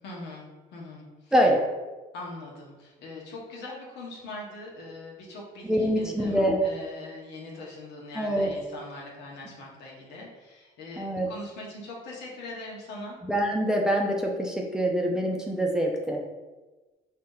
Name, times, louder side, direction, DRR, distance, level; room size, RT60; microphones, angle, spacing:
voice 1, 0.0-1.3 2.1-13.2, left 2 dB, 85° left, -3 dB, 1.2 m, -42 dB
voice 2, 1.3-1.6 5.6-6.6 8.2-8.5 11.0-11.3 13.2-16.2, equal, 5° right, 0 dB, 0.6 m, -25 dB
4.1 x 2.8 x 3.8 m, 1.2 s
cardioid pair, 110°, 17 cm